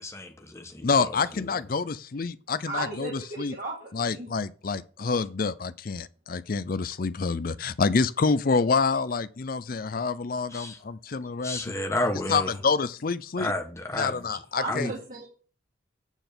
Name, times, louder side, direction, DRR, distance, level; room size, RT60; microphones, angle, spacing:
voice 1, 0.0-1.5 10.5-10.8 11.4-12.6 13.4-14.4 14.6-14.9, left 1 dB, 15° left, 1.2 m, -32 dB
voice 2, 0.8-3.5 3.9-11.7 12.3-13.5 14.0-14.9, left 4 dB, 45° left, 0.5 m, -27 dB
voice 3, 2.7-4.3 14.5-15.3, right 2 dB, 45° right, 1.7 m, -35 dB
9.1 x 3.9 x 6.8 m
head